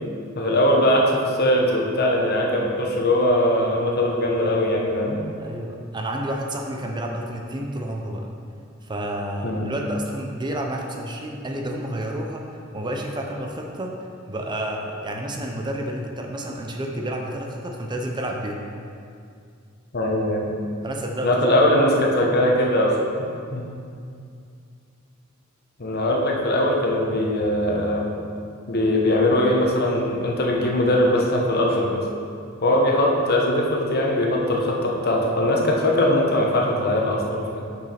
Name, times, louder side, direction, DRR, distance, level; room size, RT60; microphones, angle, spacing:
voice 1, 0.4-5.2 9.4-9.7 19.9-20.5 21.2-23.0 23.5-23.6 25.8-28.1 28.7-32.0 32.6-37.6, left 1 dB, 50° left, 0 dB, 1.0 m, -21 dB
voice 2, 5.4-8.3 8.8-18.6 20.8-21.3, right 1 dB, 20° right, 1 dB, 0.5 m, -30 dB
6.2 x 6.0 x 4.3 m, 2.3 s
head